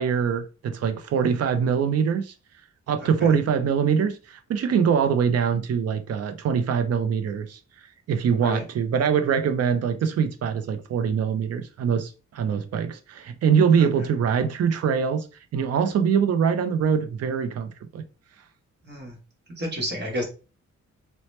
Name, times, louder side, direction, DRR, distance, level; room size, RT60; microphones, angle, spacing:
voice 1, 0.0-2.3 2.9-7.6 8.1-15.3 15.5-18.0, right 7 dB, 60° right, 0.4 m, -23 dB
voice 2, 18.8-19.2 19.6-20.2, equal, 35° right, 1.0 m, -30 dB
2.8 x 2.0 x 3.1 m
wide cardioid pair, 175°, 29 cm